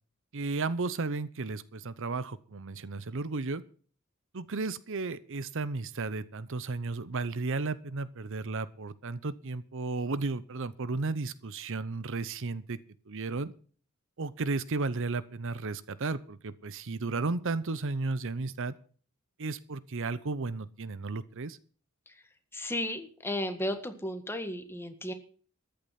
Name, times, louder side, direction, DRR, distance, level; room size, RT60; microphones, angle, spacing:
voice 1, 0.3-3.6 4.3-12.8 13.1-13.5 14.2-18.7 19.4-21.6, right 3 dB, 60° right, 16 dB, 0.8 m, -34 dB
voice 2, 22.5-25.1, left 1 dB, 10° left, 7 dB, 1.7 m, -34 dB
14.0 x 10.5 x 5.8 m, 0.43 s
head